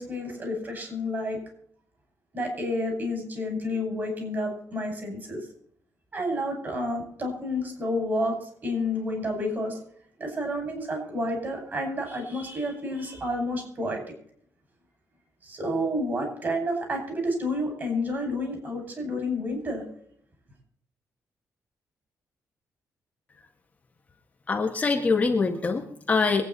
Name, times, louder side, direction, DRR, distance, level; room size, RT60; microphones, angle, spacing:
voice 1, 0.0-1.4 2.3-5.4 6.1-9.8 10.2-14.0 15.4-19.8, left 1 dB, 35° right, 3 dB, 6.1 m, -30 dB
voice 2, 24.5-26.4, left 4 dB, 25° left, 1 dB, 1.6 m, -24 dB
24.0 x 9.3 x 4.1 m, 0.64 s
wide cardioid pair, 175°, 6 cm